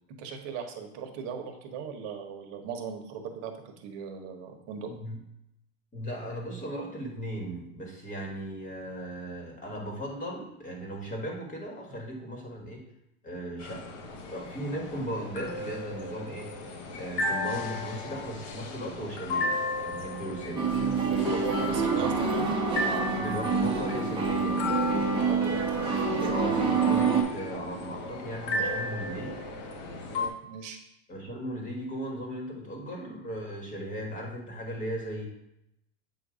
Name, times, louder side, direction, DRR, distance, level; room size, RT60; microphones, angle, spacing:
voice 1, 0.2-4.9 21.1-22.6 25.0-25.6 29.9-30.8, right 6 dB, 45° right, 4 dB, 1.1 m, -38 dB
voice 2, 4.9-5.2 5.9-12.8 13.2-13.8 14.3-16.5 16.9-20.7 23.2-24.7 26.3-29.4 31.1-35.3, equal, 20° left, 0 dB, 1.5 m, -37 dB
sound 1, 13.6-30.3, left 2 dB, 60° left, 1.1 m, -35 dB
sound 2, 20.6-27.2, right 5 dB, 10° right, 1.0 m, -27 dB
7.8 x 2.6 x 5.0 m, 0.81 s
supercardioid pair, 140°, 42 cm